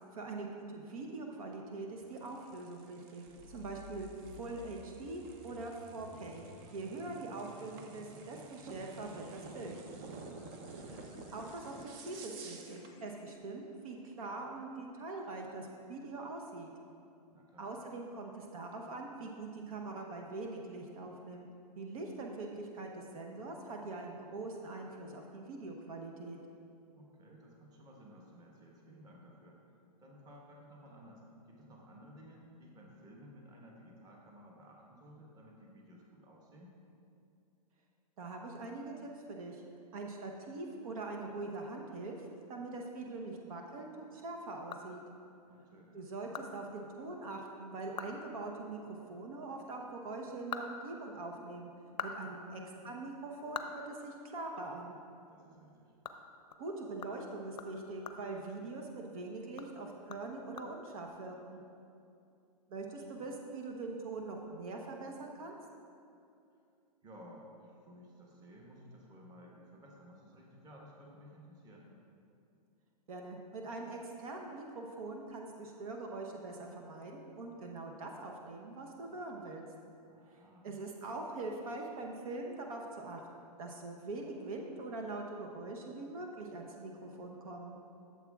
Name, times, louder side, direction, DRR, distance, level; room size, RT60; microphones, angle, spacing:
voice 1, 0.1-6.4 6.7-9.7 10.9-11.0 11.3-16.7 17.6-21.5 21.8-26.4 38.2-39.6 39.9-45.0 45.9-48.8 49.1-51.7 52.0-55.0 56.6-61.6 62.7-65.5 73.1-79.6 80.6-83.2 83.6-87.7, right 3 dB, 60° right, 1 dB, 0.9 m, -43 dB
sound 1, 2.0-13.0, right 4 dB, 35° right, 0.7 m, -52 dB
sound 2, 3.4-13.4, left 4 dB, 15° left, 0.4 m, -57 dB
voice 2, 17.3-17.7 26.9-29.6 30.0-36.8 45.5-46.0 52.2-53.0 55.3-55.9 62.9-63.3 67.0-71.9 80.1-80.8, equal, 20° right, -2 dB, 1.2 m, -56 dB
sound 3, 44.3-45.4 45.8-45.9 46.3-46.5 46.8-46.9 47.3-47.4 47.8-48.2 48.5-48.6 50.1-51.4 51.8-54.7 55.0-55.2 55.5-59.1 59.5-61.1, left 6 dB, 90° left, 0.6 m, -46 dB
12.5 x 7.2 x 2.4 m, 2.5 s
hypercardioid pair, 140°, 21 cm